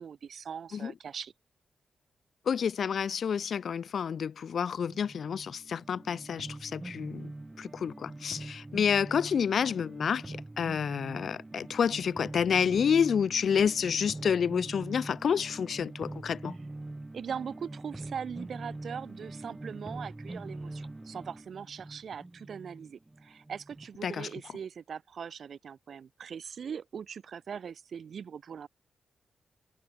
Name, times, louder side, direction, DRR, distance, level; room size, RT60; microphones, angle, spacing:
voice 1, 0.0-1.3 17.1-28.7, right 7 dB, 65° right, 3.1 m, -41 dB
voice 2, 2.5-7.3 7.6-16.5 24.0-24.3, left 7 dB, 65° left, 1.2 m, -29 dB
sound 1, 4.8-23.9, right 2 dB, 20° right, 2.9 m, -43 dB
cardioid pair, 95°, 0 cm